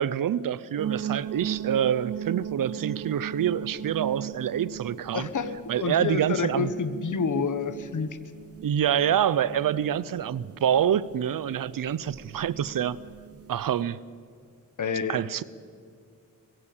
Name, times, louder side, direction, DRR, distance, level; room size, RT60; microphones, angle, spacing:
voice 1, 0.0-5.3 5.7-6.7 8.6-13.0 13.5-14.0 15.1-15.4, right 9 dB, 85° right, 0.7 m, -26 dB
sound 1, 0.8-13.8, right 10 dB, 45° right, 0.8 m, -38 dB
voice 2, 5.1-8.1 14.8-15.2, left 5 dB, 65° left, 1.4 m, -28 dB
21.5 x 16.0 x 8.8 m
wide cardioid pair, 90°, 33 cm